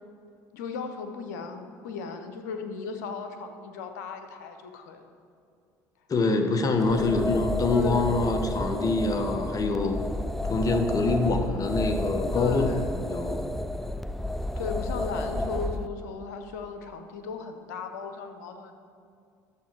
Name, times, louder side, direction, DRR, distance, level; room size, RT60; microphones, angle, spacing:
voice 1, 0.5-5.0 6.9-8.4 12.3-13.0 14.6-18.7, left 5 dB, 85° left, 6 dB, 0.8 m, -36 dB
voice 2, 6.1-10.0 10.5-12.7 13.1-13.5, left 3 dB, 40° left, 5 dB, 1.2 m, -25 dB
sound 1, 6.7-15.9, left 1 dB, ahead, 0.4 m, -31 dB
11.5 x 7.2 x 4.7 m, 2.4 s
hypercardioid pair, 70°, 9 cm